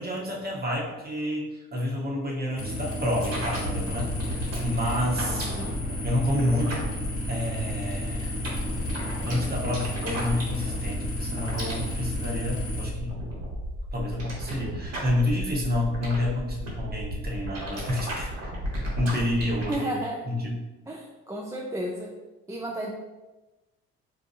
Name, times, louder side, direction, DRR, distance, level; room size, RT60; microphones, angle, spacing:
voice 1, 0.0-4.1 4.6-5.5 6.0-6.9 7.3-8.3 9.2-13.3 13.9-18.5 19.0-19.9 20.3-20.6, left 1 dB, 30° right, -2 dB, 1.0 m, -29 dB
sound 1, 2.6-12.9, left 1 dB, 45° left, 1.0 m, -33 dB
sound 2, 3.2-19.7, equal, 55° right, 1.4 m, -35 dB
voice 2, 5.3-5.9 19.7-20.3 20.9-22.2 22.5-22.9, right 1 dB, 10° right, -1 dB, 0.4 m, -33 dB
4.1 x 2.2 x 2.7 m, 1.1 s
supercardioid pair, 65°, 30 cm